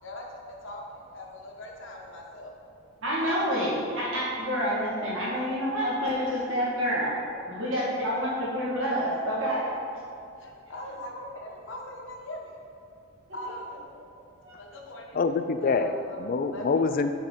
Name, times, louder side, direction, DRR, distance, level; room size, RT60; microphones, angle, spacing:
voice 1, 0.0-2.5 3.2-3.4 7.7-8.3 9.7-9.8 10.4-12.6 13.3-13.7 14.5-15.2 15.6-16.2 16.5-16.6, left 1 dB, 55° left, 0 dB, 1.0 m, -41 dB
voice 2, 3.0-7.1 7.5-9.7 13.9-14.1 14.4-14.6, equal, 60° right, -7 dB, 1.8 m, -28 dB
voice 3, 15.1-17.1, left 4 dB, 40° left, 10 dB, 0.3 m, -26 dB
7.3 x 3.9 x 5.6 m, 2.4 s
head